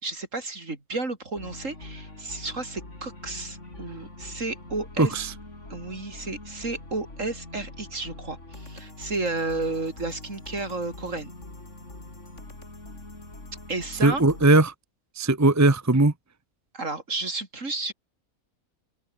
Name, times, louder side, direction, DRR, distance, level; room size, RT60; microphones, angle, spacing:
voice 1, 0.0-5.3 5.7-11.3 13.7-14.2 16.7-17.9, right 3 dB, 60° right, 4.2 m, -32 dB
sound 1, 1.4-14.5, left 2 dB, 55° left, 6.1 m, -43 dB
voice 2, 5.0-5.3 14.0-14.7 15.2-16.1, right 2 dB, 15° right, 1.0 m, -19 dB
open air
omnidirectional pair, 1.5 m